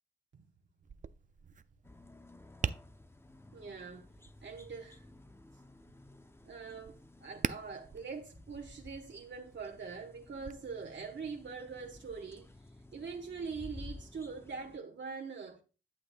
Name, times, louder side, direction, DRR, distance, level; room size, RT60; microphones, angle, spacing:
Tap, 0.8-10.5, right 6 dB, 40° right, 0.4 m, -44 dB
sound 1, 1.8-14.8, left 2 dB, 15° left, 0.5 m, -54 dB
voice 1, 3.5-4.1 4.4-5.0 6.4-12.5 12.9-15.6, right 5 dB, 70° right, 1.1 m, -43 dB
11.5 x 7.8 x 2.2 m
wide cardioid pair, 80°, 19 cm